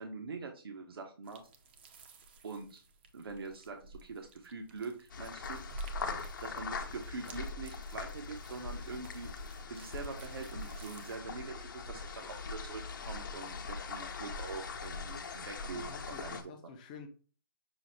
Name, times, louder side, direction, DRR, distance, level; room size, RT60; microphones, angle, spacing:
voice 1, 0.0-1.4 2.4-2.8 3.1-5.6 6.4-9.3 9.7-16.4, right 4 dB, 75° right, 1.0 m, -44 dB
sound 1, 1.2-11.2, right 2 dB, 25° right, 0.5 m, -50 dB
sound 2, 5.1-16.4, left 4 dB, 55° left, 0.8 m, -42 dB
voice 2, 15.7-17.1, left 6 dB, 20° left, 0.5 m, -50 dB
6.1 x 2.1 x 4.0 m
hypercardioid pair, 165°, 12 cm